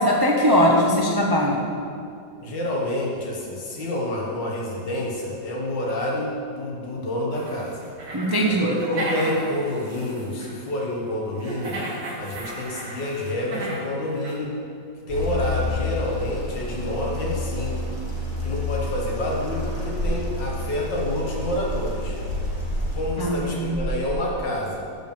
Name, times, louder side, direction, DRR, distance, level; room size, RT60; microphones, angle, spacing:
voice 1, 0.0-1.6 8.1-8.7 23.2-23.9, equal, 30° right, -2 dB, 0.4 m, -20 dB
voice 2, 2.4-7.9 8.4-11.8 12.2-14.6 15.1-18.0 18.4-22.2 22.9-24.9, left 1 dB, 75° left, -2 dB, 2.2 m, -28 dB
sound 1, 7.3-10.5 11.4-13.9 14.2-14.4, right 2 dB, 90° right, 2.3 m, -34 dB
sound 2, 15.1-24.4, left 1 dB, 25° left, 1.6 m, -29 dB
8.7 x 5.4 x 6.9 m, 2.4 s
omnidirectional pair, 1.9 m